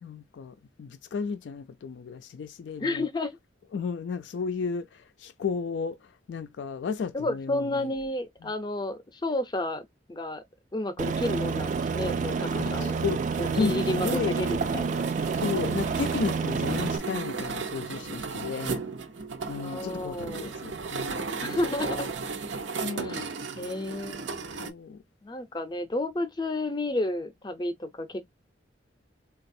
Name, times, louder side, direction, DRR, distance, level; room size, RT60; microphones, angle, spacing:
voice 1, 0.0-3.1 3.7-7.9 8.4-8.5 12.8-13.2 13.5-14.4 15.3-18.8 19.5-21.7 22.8-23.3 24.6-25.0, left 5 dB, 75° left, 0.4 m, -33 dB
voice 2, 2.8-3.4 7.1-10.4 10.7-13.0 13.4-15.1 19.6-20.6 21.4-22.1 23.0-23.3 23.6-24.5 25.2-28.3, left 1 dB, 25° left, 0.5 m, -31 dB
Aircraft, 11.0-17.0, right 5 dB, 40° right, 0.3 m, -29 dB
sound 1, 13.3-24.7, right 4 dB, 85° right, 0.6 m, -35 dB
4.0 x 2.3 x 2.6 m
head